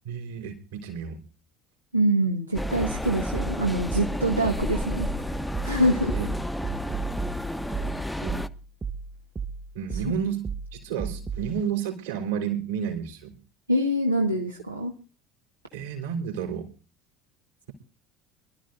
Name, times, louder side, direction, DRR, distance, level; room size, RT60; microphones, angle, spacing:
voice 1, 0.0-1.2 6.1-6.3 7.7-8.4 9.7-10.4 10.7-13.4 15.7-16.7, right 8 dB, 70° right, 3 dB, 3.6 m, -31 dB
voice 2, 1.9-5.1 5.6-6.3 10.1-10.2 13.7-14.9, right 1 dB, 90° right, 1 dB, 1.4 m, -25 dB
sound 1, 2.5-8.5, equal, 5° left, 0.9 m, -31 dB
sound 2, 2.8-11.5, right 5 dB, 25° right, 1.4 m, -35 dB
25.0 x 12.5 x 2.6 m, 0.34 s
figure-of-eight pair, 65°, 0 cm